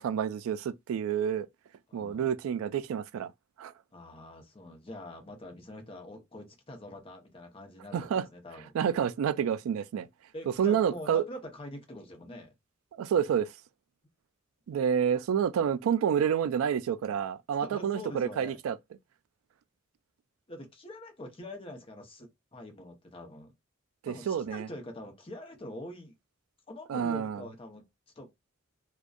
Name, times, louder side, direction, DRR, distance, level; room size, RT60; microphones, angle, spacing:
voice 1, 0.0-1.5 1.9-3.3 3.6-3.7 7.9-8.3 8.7-10.1 10.6-11.2 13.0-13.5 14.7-18.8 24.0-24.7 26.9-27.4, right 8 dB, 85° right, 0.3 m, -28 dB
voice 2, 1.9-2.3 3.9-8.7 10.3-12.5 17.0-17.1 17.6-18.6 20.5-23.5 24.0-26.1 26.7-27.8 28.2-28.3, left 1 dB, 25° left, 0.7 m, -45 dB
2.5 x 2.2 x 2.3 m
head